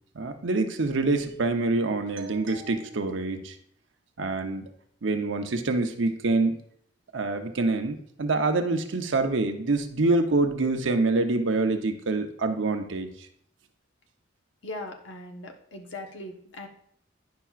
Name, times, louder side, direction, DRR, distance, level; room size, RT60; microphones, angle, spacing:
voice 1, 0.1-3.5 4.2-4.6 5.0-6.6 7.1-13.1, right 3 dB, 80° right, 6 dB, 0.8 m, -26 dB
voice 2, 14.6-16.7, left 2 dB, 75° left, 2 dB, 1.1 m, -39 dB
10.5 x 5.7 x 2.4 m, 0.65 s
head